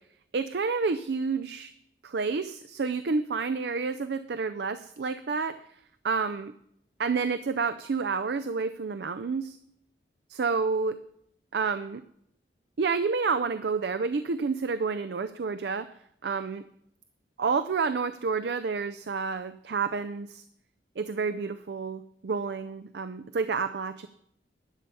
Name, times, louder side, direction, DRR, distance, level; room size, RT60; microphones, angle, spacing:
voice 1, 0.3-1.7 2.0-5.6 6.0-6.5 7.0-9.6 10.3-11.0 11.5-12.0 12.8-15.9 16.2-16.6 17.4-20.4 21.0-24.1, right 4 dB, 70° right, 11 dB, 0.5 m, -29 dB
11.0 x 8.3 x 5.5 m, 0.72 s
head